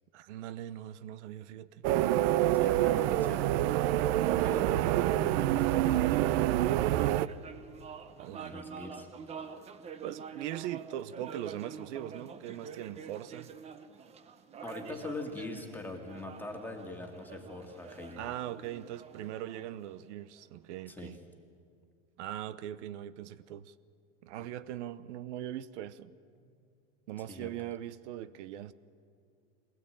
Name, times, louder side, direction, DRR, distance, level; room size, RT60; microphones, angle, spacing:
voice 1, 0.1-1.8 4.5-4.6 8.2-8.6 10.0-13.5 18.2-21.2 22.2-23.7 24.2-26.1 27.1-28.7, right 12 dB, 75° right, 0.8 m, -40 dB
sound 1, 1.8-7.3, right 14 dB, 55° right, 0.6 m, -26 dB
voice 2, 2.5-3.6 4.2-7.1 8.5-9.6 14.6-18.3 20.9-21.2 26.4-26.5 27.3-27.5, left 2 dB, 5° left, 1.9 m, -43 dB
sound 2, 6.7-20.4, right 6 dB, 20° right, 0.7 m, -47 dB
22.5 x 17.0 x 8.9 m
supercardioid pair, 160°, 35 cm